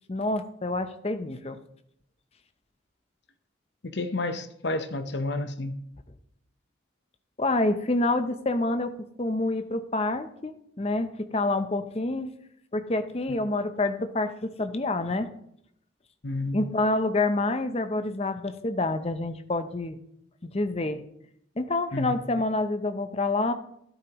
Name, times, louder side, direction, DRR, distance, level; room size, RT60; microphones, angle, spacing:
voice 1, 0.1-1.6 7.4-8.9 9.2-12.3 12.7-15.3 16.5-20.0 20.4-21.0 21.6-23.5, left 2 dB, 30° left, 0.6 m, -27 dB
voice 2, 3.8-5.8 16.2-16.6 21.9-22.1, left 2 dB, 60° left, 0.8 m, -30 dB
13.0 x 11.0 x 3.0 m
head